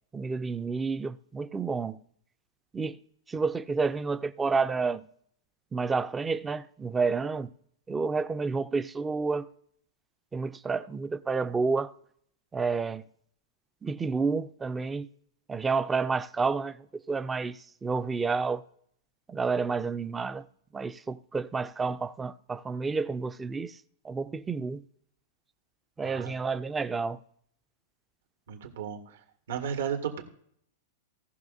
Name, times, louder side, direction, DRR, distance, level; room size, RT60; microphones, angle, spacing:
voice 1, 0.1-2.0 2.7-3.0 3.3-5.1 5.7-7.5 7.9-9.5 10.3-11.9 12.5-13.0 13.8-15.1 15.5-18.6 19.3-20.4 20.7-23.8 24.0-24.8 26.0-27.2, right 4 dB, 10° right, 0.3 m, -30 dB
voice 2, 26.0-26.4 28.5-30.2, right 8 dB, 85° right, 2.1 m, -34 dB
18.0 x 6.3 x 2.6 m
supercardioid pair, 170°, 0 cm